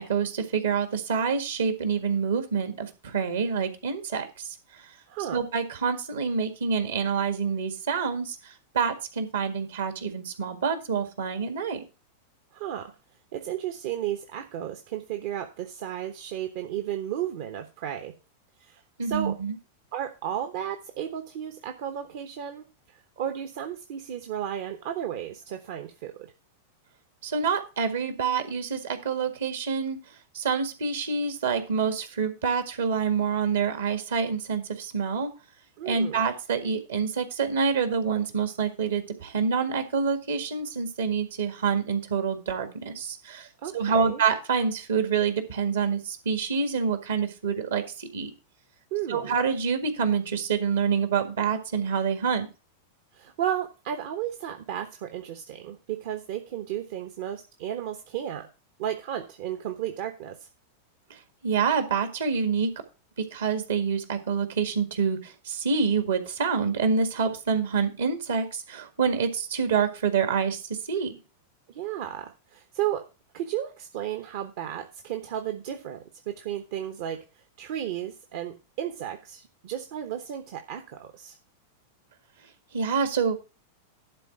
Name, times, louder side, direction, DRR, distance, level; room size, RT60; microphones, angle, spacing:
voice 1, 0.0-4.3 5.3-8.4 8.7-11.8 19.0-19.6 27.2-30.0 30.3-35.3 35.8-43.5 43.7-48.3 49.1-52.5 61.4-62.7 63.3-70.6 70.9-71.1 82.7-83.4, right 6 dB, 70° right, 8 dB, 1.8 m, -27 dB
voice 2, 5.1-5.4 12.5-12.9 13.3-18.1 18.6-19.3 19.9-22.6 23.2-26.3 35.8-36.2 43.6-44.2 48.9-49.4 53.1-58.5 58.8-60.4 71.7-73.1 73.3-77.2 77.6-81.4, right 10 dB, 55° right, 6 dB, 1.0 m, -33 dB
11.5 x 3.9 x 7.2 m, 0.31 s
figure-of-eight pair, 95°, 0 cm